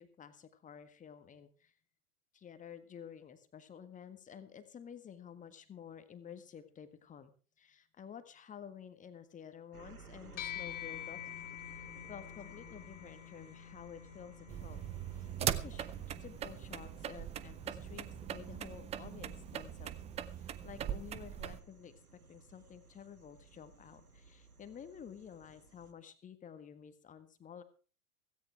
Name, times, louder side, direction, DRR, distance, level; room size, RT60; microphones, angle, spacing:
voice 1, 0.0-1.7 2.3-14.8 15.1-19.9 20.4-21.9 22.3-27.6, left 8 dB, 15° left, 10 dB, 1.6 m, -52 dB
sound 1, 9.7-25.9, right 4 dB, 80° right, 1.9 m, -58 dB
sound 2, 10.4-20.0, left 12 dB, 55° left, 1.3 m, -49 dB
sound 3, 14.5-21.6, right 10 dB, 15° right, 0.6 m, -40 dB
16.5 x 16.5 x 3.4 m, 0.38 s
figure-of-eight pair, 95°, 44 cm